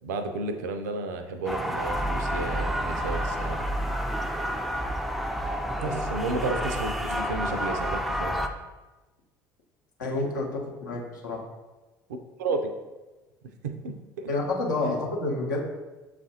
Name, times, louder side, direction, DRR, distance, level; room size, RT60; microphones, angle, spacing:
voice 1, 0.0-3.7 5.8-8.4 12.4-12.7 13.6-14.3 14.8-14.9, right 3 dB, 65° right, 7 dB, 0.4 m, -32 dB
sound 1, 1.5-8.5, equal, ahead, 0.3 m, -29 dB
voice 2, 10.0-11.4 14.3-15.6, left 2 dB, 75° left, -2 dB, 0.8 m, -29 dB
7.0 x 2.5 x 2.7 m, 1.2 s
figure-of-eight pair, 60°, 10 cm